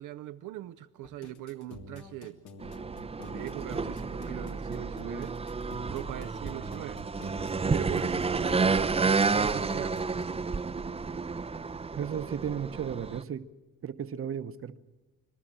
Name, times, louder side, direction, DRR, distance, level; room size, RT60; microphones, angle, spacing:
voice 1, 0.0-2.4 3.3-5.5 5.9-7.0 7.3-10.1, right 14 dB, 85° right, 0.7 m, -41 dB
sound 1, 1.0-10.2, left 2 dB, 80° left, 2.1 m, -48 dB
sound 2, 2.6-13.2, right 4 dB, 20° right, 0.6 m, -30 dB
voice 2, 11.9-13.4 13.8-14.8, right 8 dB, 45° right, 0.9 m, -34 dB
26.5 x 12.5 x 8.9 m
cardioid pair, 90°, 30 cm